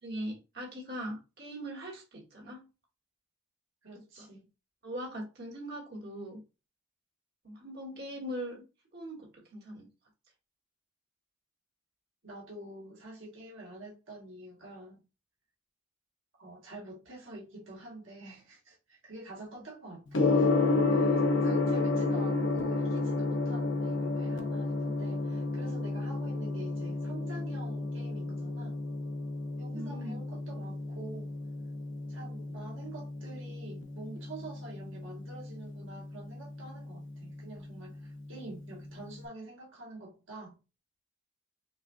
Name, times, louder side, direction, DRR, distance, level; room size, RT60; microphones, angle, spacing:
voice 1, 0.0-2.6 4.2-4.3 4.8-6.4 7.4-8.6 8.9-9.9 21.0-21.3 29.7-30.2, equal, 50° right, 1.6 m, -41 dB
voice 2, 3.8-4.4 12.2-15.0 16.4-20.5 20.9-28.8 29.6-31.3 32.1-40.6, right 2 dB, 75° right, 1.4 m, -47 dB
Gong, 20.1-39.2, left 3 dB, 65° left, 0.8 m, -32 dB
6.0 x 2.3 x 2.6 m
head